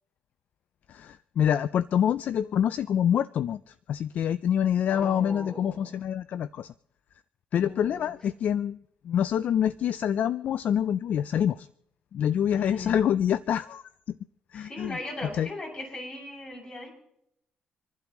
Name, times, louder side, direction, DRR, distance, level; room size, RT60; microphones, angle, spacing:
voice 1, 0.9-6.7 7.5-8.8 9.0-11.7 12.1-13.8 14.1-14.2 14.5-15.0 15.4-15.5, left 9 dB, 60° left, 0.4 m, -26 dB
voice 2, 4.9-5.9 7.6-8.1 12.6-13.0 14.5-16.9, left 2 dB, 40° left, 6.9 m, -39 dB
27.5 x 11.5 x 3.1 m
cardioid pair, 85°, 3 cm